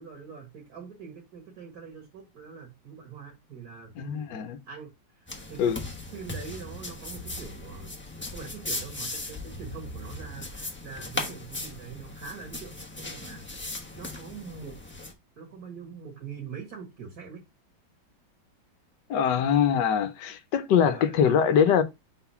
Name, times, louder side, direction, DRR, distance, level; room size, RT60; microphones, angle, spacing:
voice 1, 0.0-5.7 6.1-8.0 8.3-13.5 14.0-14.8 15.4-17.4 20.7-21.8, right 6 dB, 55° right, 2.1 m, -43 dB
voice 2, 4.0-4.6 5.6-5.8 19.1-21.8, left 8 dB, 70° left, 1.4 m, -23 dB
sound 1, 5.3-15.1, left 2 dB, 10° left, 0.7 m, -38 dB
4.4 x 3.9 x 5.6 m
omnidirectional pair, 2.0 m